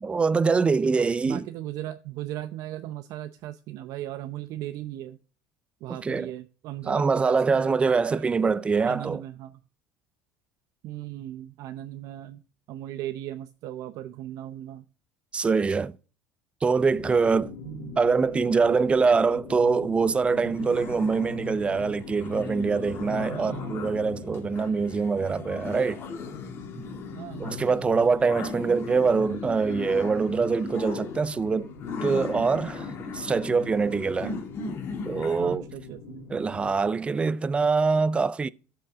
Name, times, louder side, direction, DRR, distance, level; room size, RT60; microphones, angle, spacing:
voice 1, 0.0-1.5 6.0-6.3 6.9-9.2 15.3-16.0 16.6-17.5 18.0-26.0 27.4-31.7 32.0-34.4 35.1-35.7 36.3-38.5, right 4 dB, 15° right, 0.4 m, -24 dB
voice 2, 1.2-5.2 5.8-8.3 8.8-9.6 10.8-12.4 12.7-14.8 17.6-18.0 23.3-23.9 27.1-27.6 35.4-36.3, right 13 dB, 60° right, 0.6 m, -37 dB
sound 1, 16.9-36.7, left 6 dB, 75° left, 2.1 m, -42 dB
sound 2, 20.3-35.6, left 4 dB, 40° left, 2.3 m, -38 dB
13.0 x 5.8 x 3.6 m
cardioid pair, 140°, 7 cm